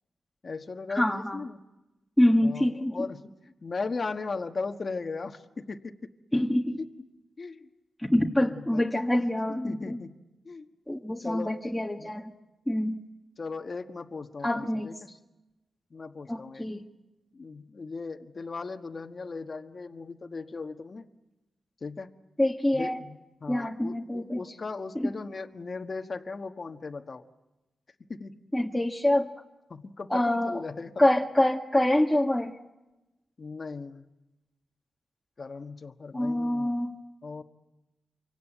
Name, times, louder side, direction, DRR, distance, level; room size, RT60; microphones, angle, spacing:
voice 1, 0.4-1.6 2.4-3.3 3.6-5.9 6.8-6.9 7.4-7.7 8.0-8.1 8.4-8.8 9.5-10.2 10.4-10.7 11.2-11.5 12.0-12.1 13.4-15.0 15.9-16.7 17.3-21.1 21.8-22.1 22.7-27.2 28.1-28.3 29.7-30.9 33.4-34.0 35.4-36.8 37.2-37.4, left 4 dB, 45° left, 6 dB, 1.4 m, -37 dB
voice 2, 1.0-1.4 2.2-3.1 6.3-6.8 8.0-10.0 10.9-12.3 12.7-13.0 14.4-14.9 16.3-16.8 22.4-23.0 23.5-24.4 25.0-25.1 28.5-29.3 30.1-30.6 31.0-32.5 36.1-36.9, left 1 dB, 5° left, 0 dB, 1.7 m, -25 dB
27.0 x 24.5 x 9.1 m, 1.0 s
cardioid pair, 80°, 0 cm